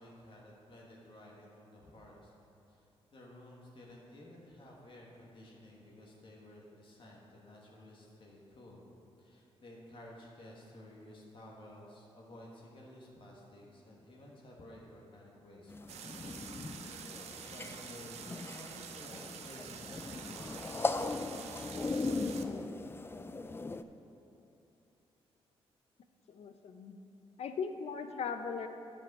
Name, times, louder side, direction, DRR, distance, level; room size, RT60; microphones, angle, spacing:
voice 1, 0.0-2.3 2.7-2.8 3.1-8.8 9.2-18.2 18.5-21.8, left 1 dB, 50° left, -3 dB, 1.5 m, -54 dB
sound 1, 15.7-23.8, left 3 dB, 20° left, 0.4 m, -39 dB
sound 2, 15.9-22.4, right 8 dB, 80° right, 0.5 m, -48 dB
voice 2, 26.3-26.9 27.4-28.7, left 6 dB, 70° left, 8 dB, 0.6 m, -38 dB
9.3 x 5.4 x 5.4 m, 2.9 s
cardioid pair, 80°, 11 cm